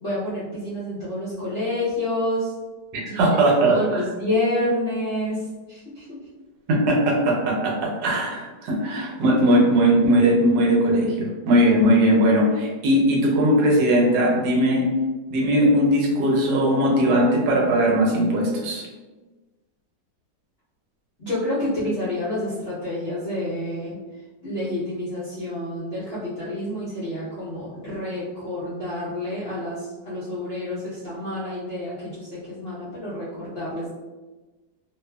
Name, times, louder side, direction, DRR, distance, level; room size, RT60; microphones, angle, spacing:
voice 1, 0.0-2.5 3.0-3.4 3.6-6.2 21.2-24.0 24.4-33.9, left 1 dB, 55° left, -11 dB, 0.7 m, -28 dB
voice 2, 2.9-4.0 6.7-14.9 15.3-18.9, right 1 dB, 80° right, -2 dB, 1.3 m, -19 dB
2.6 x 2.4 x 2.2 m, 1.2 s
omnidirectional pair, 1.9 m